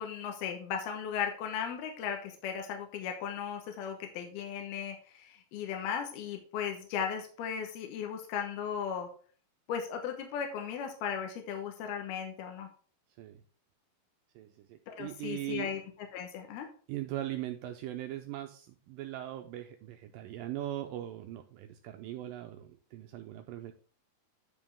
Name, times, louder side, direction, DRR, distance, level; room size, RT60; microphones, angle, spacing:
voice 1, 0.0-9.1 9.7-12.7 14.9-15.8 16.1-16.7, left 7 dB, 80° left, 4 dB, 3.1 m, -36 dB
voice 2, 14.4-15.7 16.9-23.7, right 14 dB, 85° right, 5 dB, 2.0 m, -40 dB
10.0 x 5.3 x 3.5 m, 0.42 s
omnidirectional pair, 4.4 m